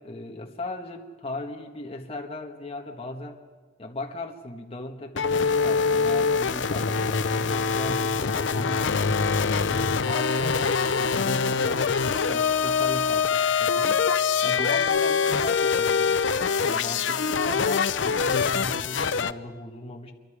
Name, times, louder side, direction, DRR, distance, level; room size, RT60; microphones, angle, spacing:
voice 1, 0.0-3.4 3.8-9.3 9.6-14.0 14.4-16.2 16.6-20.1, left 2 dB, 30° left, 2 dB, 1.4 m, -37 dB
sound 1, 5.2-19.3, left 5 dB, 70° left, 0.7 m, -24 dB
28.0 x 24.0 x 5.0 m, 1.5 s
head